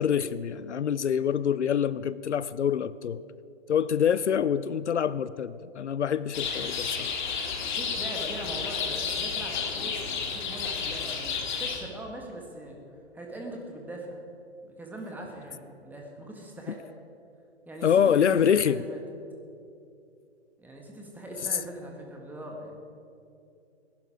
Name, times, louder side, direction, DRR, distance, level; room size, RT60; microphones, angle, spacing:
voice 1, 0.0-3.2 3.7-7.1 17.8-18.8, left 8 dB, 75° left, 17 dB, 0.5 m, -25 dB
sound 1, 6.3-11.8, left 6 dB, 45° left, 1.9 m, -31 dB
voice 2, 7.6-12.8 13.1-14.2 14.6-16.8 17.7-19.0 20.6-22.8, right 1 dB, 5° right, 0 dB, 1.8 m, -41 dB
19.0 x 11.0 x 5.0 m, 2.6 s
figure-of-eight pair, 125°, 35 cm